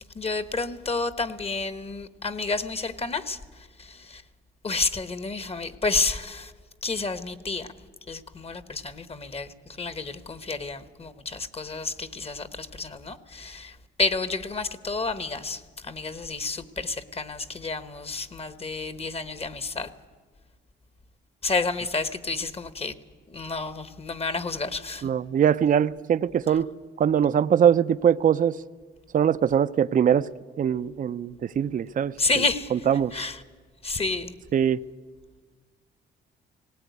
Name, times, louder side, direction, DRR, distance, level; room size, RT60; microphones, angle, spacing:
voice 1, 0.2-3.4 4.6-6.5 6.8-7.7 8.1-9.5 9.8-13.7 14.0-15.6 15.9-19.9 21.4-22.9 23.3-25.0 32.2-32.7 33.1-33.3 33.8-34.3, left 3 dB, 30° left, 1.2 m, -30 dB
voice 2, 25.0-26.7 27.0-28.6 29.1-30.3 30.6-32.4 32.7-33.1 34.5-34.8, right 8 dB, 45° right, 0.5 m, -22 dB
18.5 x 18.0 x 9.4 m
cardioid pair, 90°, 20 cm